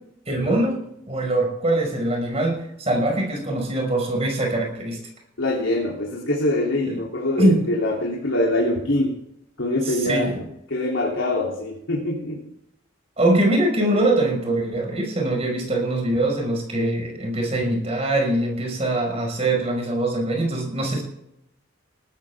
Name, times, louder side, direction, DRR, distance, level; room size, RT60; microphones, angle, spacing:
voice 1, 0.3-0.8 1.1-5.0 6.9-7.0 7.4-7.6 9.9-10.4 13.2-21.0, right 1 dB, 30° right, 1 dB, 5.5 m, -23 dB
voice 2, 5.4-9.2 9.6-10.3 10.7-12.5, left 1 dB, 85° left, -2 dB, 3.3 m, -24 dB
19.0 x 12.5 x 3.6 m, 0.78 s
head